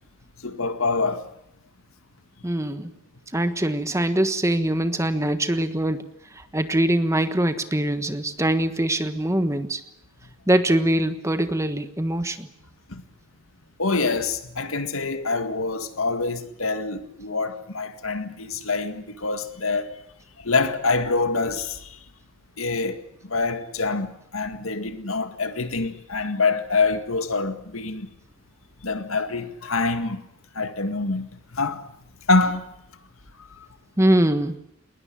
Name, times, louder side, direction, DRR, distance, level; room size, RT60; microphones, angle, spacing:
voice 1, 0.4-1.3 12.9-13.0 13.8-20.0 20.4-21.9 22.6-28.1 28.8-30.2 30.6-31.3 31.5-31.8 32.3-32.7, left 3 dB, 75° left, 2.0 m, -25 dB
voice 2, 2.4-2.9 3.3-6.0 6.5-9.8 10.5-12.5 34.0-34.5, right 1 dB, 15° right, 1.3 m, -23 dB
20.5 x 20.0 x 10.0 m
head